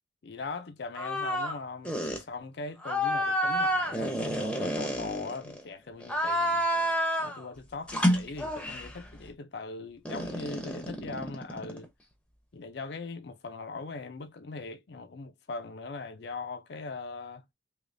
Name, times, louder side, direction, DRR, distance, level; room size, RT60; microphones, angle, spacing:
voice 1, 0.2-6.7 7.2-11.9 12.5-17.4, left 3 dB, 60° left, 0.5 m, -40 dB
sound 1, 0.9-1.6 1.8-2.2 2.8-5.6 6.0-7.4 7.9-9.0 10.0-11.8, equal, 5° left, 0.6 m, -29 dB
3.3 x 3.0 x 2.5 m
head